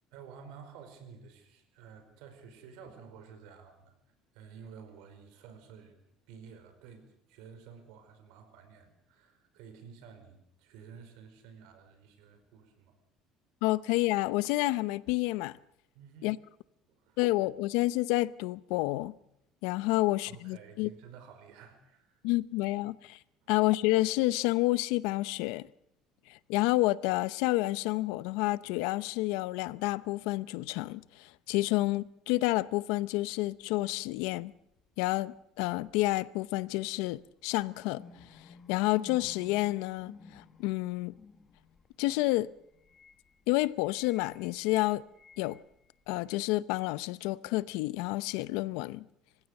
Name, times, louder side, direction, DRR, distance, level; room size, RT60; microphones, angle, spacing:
voice 1, 0.1-3.9 4.3-6.0 6.3-13.0 15.9-16.3 16.9-17.2 20.0-22.2 23.4-23.5, right 6 dB, 80° right, 4.9 m, -52 dB
voice 2, 13.6-15.6 16.2-16.4 17.2-19.1 19.6-20.9 22.2-23.2 23.5-25.7 26.3-34.5 35.0-38.0 38.3-41.2 42.0-42.5 43.5-45.0 45.4-45.6 46.1-49.0, left 19 dB, 85° left, 0.7 m, -29 dB
sound 1, 33.6-33.7 34.7-35.2 35.8-36.2 37.0-46.5, left 5 dB, 25° left, 1.2 m, -55 dB
26.5 x 15.5 x 6.6 m
cardioid pair, 150°, 0 cm